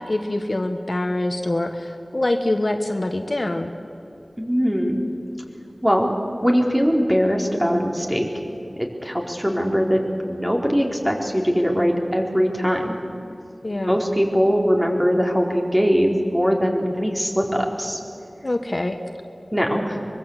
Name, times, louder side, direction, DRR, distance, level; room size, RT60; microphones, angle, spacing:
voice 1, 0.0-3.7 13.6-14.0 18.4-19.0, left 1 dB, 55° left, 5 dB, 1.4 m, -24 dB
voice 2, 4.4-5.0 5.8-6.2 6.4-8.3 8.8-12.9 13.8-18.0 19.5-20.1, equal, 10° right, 0 dB, 4.2 m, -21 dB
24.0 x 23.0 x 8.2 m, 2.7 s
wide cardioid pair, 50°, 0 cm